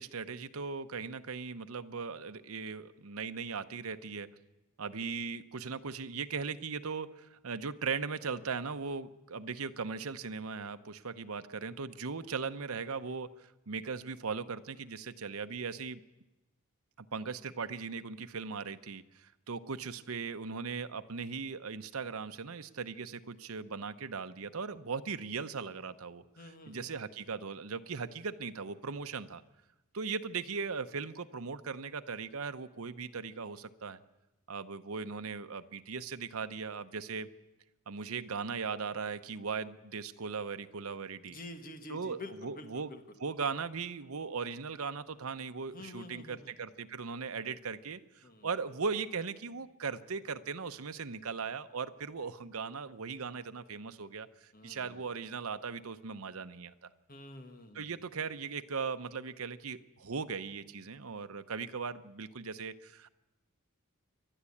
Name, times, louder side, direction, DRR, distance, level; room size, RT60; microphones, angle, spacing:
voice 1, 0.0-4.3 4.8-16.0 17.0-29.4 29.9-34.0 34.5-37.3 37.9-41.4 41.9-42.9 43.2-56.9 57.7-63.1, right 5 dB, 80° right, 10 dB, 0.9 m, -38 dB
voice 2, 26.4-27.0 41.2-43.0 45.7-46.5 48.2-48.5 54.5-55.0 57.1-57.9, left 2 dB, 40° left, 7 dB, 1.5 m, -48 dB
28.0 x 12.0 x 8.5 m, 1.0 s
head